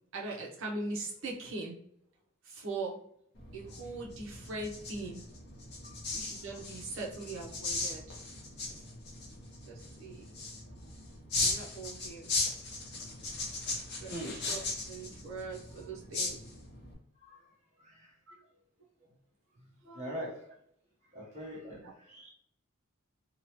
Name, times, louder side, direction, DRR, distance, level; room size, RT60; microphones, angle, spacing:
voice 1, 0.1-1.7 2.4-3.0 3.5-5.2 6.1-8.0 9.7-10.3 11.4-12.3 14.0-16.4 18.3-18.4 19.8-20.1 21.6-21.8, right 3 dB, 60° right, -3 dB, 0.7 m, -41 dB
sound 1, 3.3-16.9, left 3 dB, 50° left, 0.7 m, -38 dB
voice 2, 17.8-18.2 19.9-20.4 21.1-22.3, equal, 30° right, -3 dB, 0.8 m, -43 dB
2.9 x 2.2 x 2.8 m, 0.72 s
head